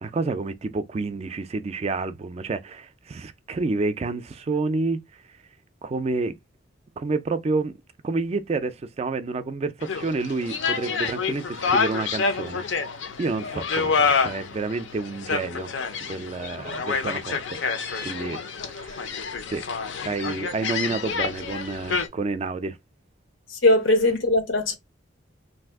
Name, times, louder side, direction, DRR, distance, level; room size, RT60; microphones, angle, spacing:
voice 1, 0.0-5.0 5.8-6.4 7.0-7.7 8.0-12.8 13.2-15.7 16.0-17.6 18.0-18.4 18.7-19.1 19.5-19.6 20.0-22.8, right 3 dB, 35° right, 0.3 m, -29 dB
sound 1, 9.8-22.1, left 5 dB, 70° left, 0.5 m, -28 dB
voice 2, 23.5-24.8, left 2 dB, 90° left, 0.9 m, -20 dB
2.6 x 2.4 x 3.4 m
head